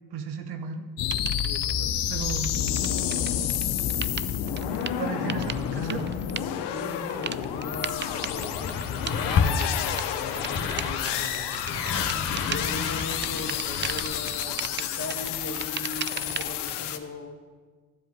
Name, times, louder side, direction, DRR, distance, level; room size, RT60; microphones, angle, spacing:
voice 1, 0.1-0.9 1.3-1.4 2.1-2.5 5.0-6.0, right 6 dB, 70° right, 7 dB, 1.2 m, -34 dB
sound 1, 1.0-17.0, left 10 dB, 80° left, 0.8 m, -30 dB
sound 2, 1.1-1.7 2.2-16.7, right 8 dB, 30° right, 0.4 m, -37 dB
voice 2, 1.4-2.0 2.4-2.5 2.9-3.6 4.5-5.4 6.7-11.9 12.4-17.4, left 3 dB, 40° left, 1 dB, 1.9 m, -39 dB
sound 3, 7.9-14.2, left 5 dB, 60° left, 1.4 m, -31 dB
13.5 x 7.7 x 5.2 m, 1.5 s
hypercardioid pair, 45°, 40 cm